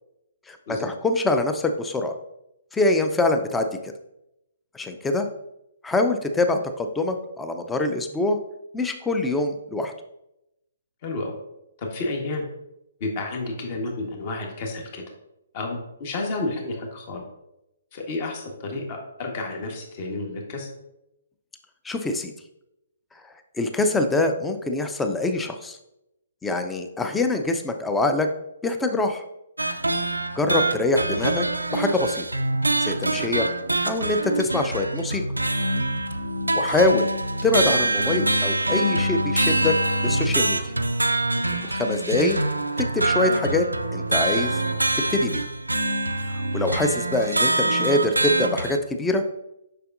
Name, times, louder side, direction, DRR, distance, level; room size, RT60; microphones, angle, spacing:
voice 1, 0.5-2.1 2.7-3.7 4.7-5.3 5.8-8.4 8.7-9.9 21.8-22.3 23.6-25.8 26.4-28.3 28.6-29.2 30.4-31.5 31.7-32.2 32.8-33.5 33.9-35.2 36.5-37.1 37.4-39.8 40.0-40.6 41.7-42.4 42.8-43.7 43.9-44.6 45.1-45.4 46.5-49.2, left 2 dB, 10° left, 6 dB, 0.5 m, -24 dB
voice 2, 11.0-11.3 11.8-12.4 13.0-15.0 15.5-17.2 17.9-20.7 33.2-33.5, left 2 dB, 40° left, 2 dB, 1.3 m, -31 dB
sound 1, 29.6-48.8, right 2 dB, 90° right, 0.4 m, -25 dB
6.7 x 5.8 x 2.5 m, 0.86 s
figure-of-eight pair, 130°, 0 cm